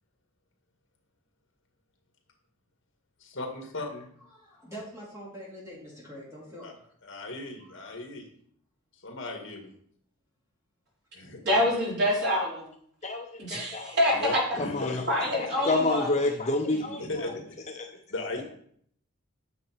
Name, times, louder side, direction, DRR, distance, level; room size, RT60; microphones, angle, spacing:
voice 1, 3.2-4.1 6.6-6.7 7.0-8.3 8.9-9.7 11.1-11.4 14.1-15.0 17.0-17.4 18.1-18.4, left 2 dB, 60° left, 2 dB, 2.0 m, -36 dB
voice 2, 4.3-7.2 7.6-8.0, equal, 15° right, -6 dB, 3.8 m, -45 dB
voice 3, 11.4-12.6 13.4-14.4 15.1-16.1 16.7-16.8, left 1 dB, 50° right, -5 dB, 4.3 m, -26 dB
voice 4, 13.0-14.0 14.6-15.0 15.3-17.3 17.8-17.9, left 2 dB, 30° left, 3 dB, 0.7 m, -29 dB
9.6 x 6.9 x 4.6 m, 0.64 s
head